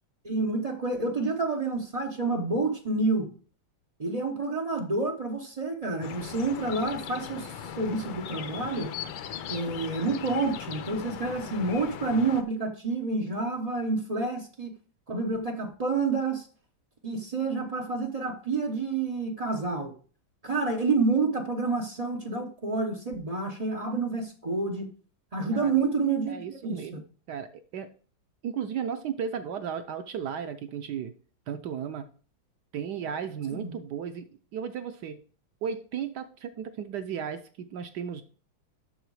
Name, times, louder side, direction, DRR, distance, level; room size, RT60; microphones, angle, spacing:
voice 1, 0.2-3.3 4.0-8.9 9.5-14.7 15.1-16.5 17.0-19.9 20.4-24.9 25.3-26.8 33.5-33.7, right 3 dB, 90° right, 1 dB, 0.3 m, -29 dB
sound 1, 6.0-12.4, left 8 dB, 70° left, 1.5 m, -39 dB
voice 2, 26.3-27.9 28.4-31.1 31.5-32.1 32.7-35.2 35.6-38.2, right 7 dB, 70° right, 9 dB, 1.0 m, -35 dB
7.9 x 6.4 x 4.7 m, 0.40 s
omnidirectional pair, 2.3 m